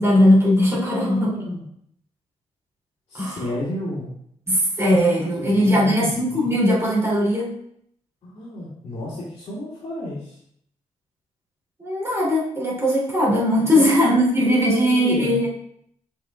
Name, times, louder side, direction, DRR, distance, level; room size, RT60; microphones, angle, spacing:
voice 1, 0.0-1.3 3.1-3.4 4.5-7.5 11.8-15.5, equal, 20° right, -6 dB, 3.1 m, -19 dB
voice 2, 0.7-1.6 3.1-4.1 5.4-6.7 8.2-10.4 13.5-14.2 14.4-15.4, left 1 dB, 55° left, -7 dB, 2.4 m, -31 dB
7.7 x 7.0 x 2.4 m, 0.69 s
cardioid pair, 120°, 12 cm